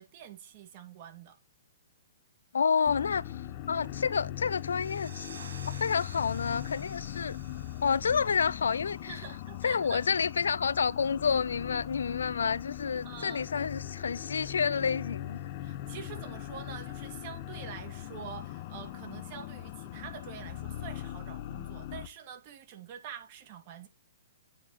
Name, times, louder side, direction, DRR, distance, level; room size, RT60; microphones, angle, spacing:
voice 1, 0.0-1.4 9.1-10.1 13.0-13.5 15.6-23.9, right 8 dB, 40° right, 2.3 m, -46 dB
voice 2, 2.5-3.2 3.7-5.3 5.7-7.4 7.8-9.2 9.6-15.4, left 6 dB, 85° left, 0.4 m, -29 dB
sound 1, 2.9-22.1, left 13 dB, 40° left, 1.1 m, -40 dB
sound 2, 4.4-9.8, right 5 dB, 85° right, 1.1 m, -52 dB
9.1 x 4.4 x 4.2 m
hypercardioid pair, 140°, 0 cm